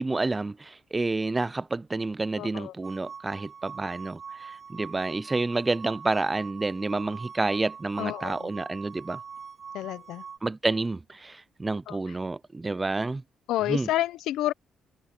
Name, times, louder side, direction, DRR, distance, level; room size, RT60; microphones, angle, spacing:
voice 1, 0.0-9.2 10.4-13.2 13.7-13.9, right 3 dB, 20° right, 0.4 m, -29 dB
voice 2, 2.4-2.7 8.0-8.5 9.7-10.2 11.9-12.0 13.5-14.5, left 14 dB, 90° left, 0.7 m, -29 dB
sound 1, 2.8-10.4, right 6 dB, 45° right, 1.7 m, -43 dB
cardioid pair, 90°, 0 cm